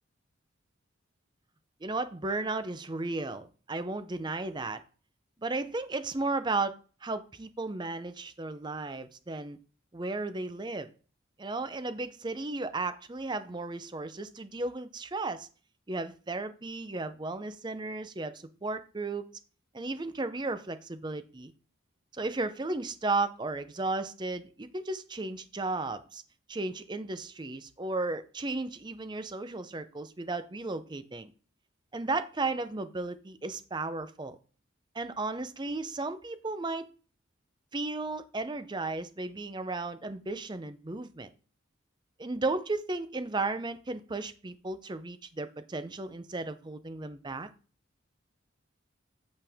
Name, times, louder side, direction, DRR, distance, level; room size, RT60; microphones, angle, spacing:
voice 1, 1.8-4.8 5.4-9.6 9.9-10.9 11.4-15.5 15.9-19.3 19.7-21.5 22.1-26.2 26.5-31.3 31.9-34.4 34.9-36.9 37.7-41.3 42.2-47.5, right 3 dB, 20° right, 12 dB, 0.6 m, -34 dB
8.6 x 5.3 x 3.5 m, 0.38 s
head